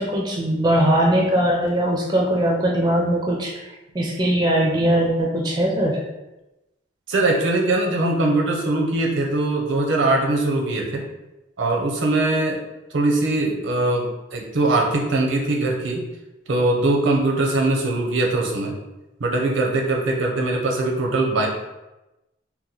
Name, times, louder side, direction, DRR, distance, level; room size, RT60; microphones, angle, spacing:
voice 1, 0.0-3.6 3.9-6.0, right 1 dB, 20° right, -1 dB, 0.4 m, -20 dB
voice 2, 7.1-11.0 11.6-12.6 12.9-16.0 16.5-18.7 19.2-21.5, right 2 dB, 80° right, 0 dB, 0.6 m, -21 dB
2.9 x 2.2 x 3.8 m, 0.99 s
head